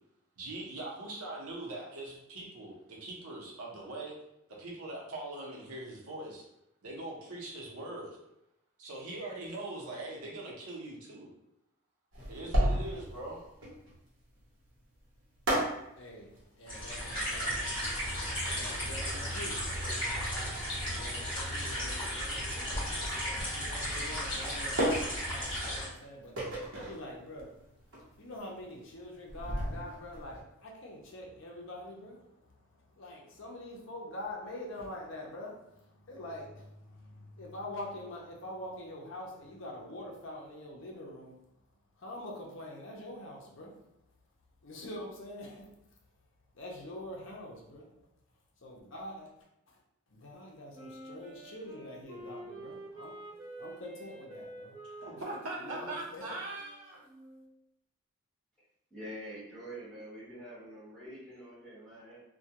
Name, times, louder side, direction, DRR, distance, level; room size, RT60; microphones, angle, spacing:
voice 1, 0.4-4.1 4.6-6.4 6.8-8.2 8.8-11.3 12.3-13.4 55.0-57.0, right 2 dB, 85° right, -3 dB, 0.7 m, -41 dB
sound 1, 12.1-30.4, equal, 60° right, 0.8 m, -36 dB
voice 2, 15.8-41.4 42.0-43.8 44.6-45.7 46.5-47.9 48.6-49.3 49.7-49.8 50.1-53.2 53.6-54.8 55.1-55.3 55.6-56.2, left 1 dB, 60° left, -2 dB, 0.5 m, -45 dB
sound 2, 16.7-25.8, equal, 20° left, 1.0 m, -35 dB
Wind instrument woodwind instrument, 50.7-57.5, right 1 dB, 15° right, 0.5 m, -48 dB
voice 3, 58.9-62.2, equal, 5° left, -11 dB, 1.0 m, -46 dB
2.2 x 2.2 x 2.8 m, 0.85 s
head